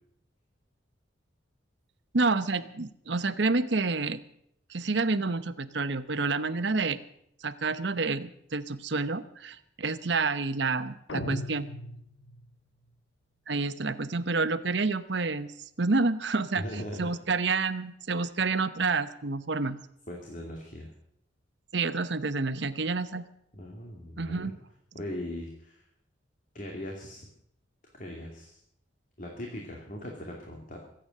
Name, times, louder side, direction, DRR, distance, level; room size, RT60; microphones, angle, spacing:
voice 1, 2.1-4.2 4.7-7.0 7.4-11.7 13.5-15.5 15.8-19.8 21.7-23.3 24.2-24.6, right 3 dB, 65° right, 12 dB, 0.9 m, -29 dB
sound 1, 11.1-12.6, left 1 dB, 75° left, 1.3 m, -37 dB
voice 2, 16.6-17.2 20.1-20.9 23.5-24.5 24.9-25.9 26.5-27.3 27.9-28.6 29.2-30.8, left 1 dB, 40° left, 0 dB, 2.6 m, -39 dB
24.0 x 8.9 x 6.6 m, 0.73 s
head